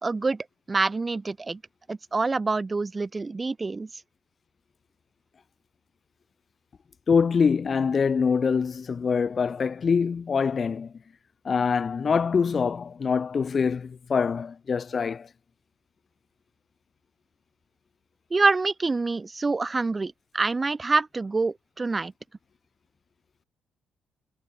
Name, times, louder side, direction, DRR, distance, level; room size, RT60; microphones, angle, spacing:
voice 1, 0.0-1.6 1.9-3.9 18.3-22.1, right 3 dB, 30° right, 0.6 m, -26 dB
voice 2, 7.1-10.9 11.4-15.3, left 6 dB, 45° left, 0.4 m, -24 dB
hypercardioid pair, 40°, 0 cm